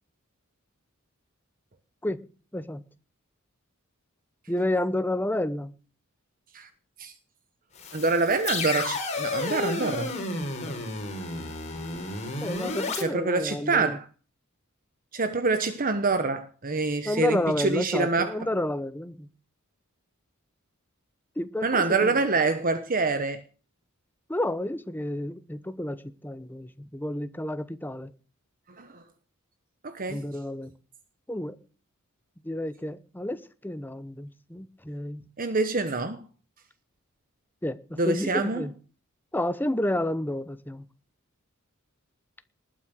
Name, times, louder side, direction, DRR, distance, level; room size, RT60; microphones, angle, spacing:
voice 1, 2.5-2.8 4.5-5.7 12.4-14.0 17.0-19.3 21.4-22.1 24.3-28.1 30.1-30.7 31.3-31.6 32.4-35.2 37.6-38.7 39.3-40.8, left 1 dB, 10° left, 1.0 m, -30 dB
sound 1, 7.8-13.0, left 3 dB, 35° left, 4.4 m, -32 dB
voice 2, 7.9-10.1 12.9-14.0 15.1-18.3 21.6-23.4 28.8-29.0 29.8-30.2 35.4-36.2 38.0-38.7, right 3 dB, 40° right, 1.1 m, -26 dB
19.5 x 9.3 x 6.4 m
head